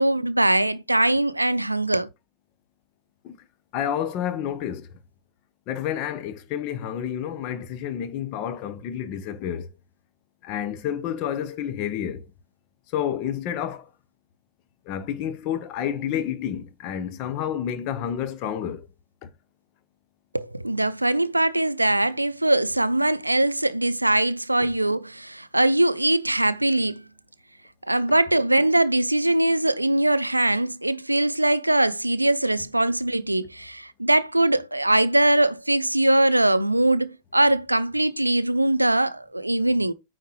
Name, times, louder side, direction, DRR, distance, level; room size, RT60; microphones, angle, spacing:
voice 1, 0.0-2.1 20.3-27.0 27.9-39.9, right 1 dB, 85° right, 0.5 m, -22 dB
voice 2, 3.7-4.9 5.7-9.7 10.4-12.2 12.9-13.9 14.8-18.9 19.2-19.3 24.6-24.7, left 9 dB, 40° left, 1.4 m, -29 dB
9.2 x 4.3 x 4.8 m
figure-of-eight pair, 95°, 0 cm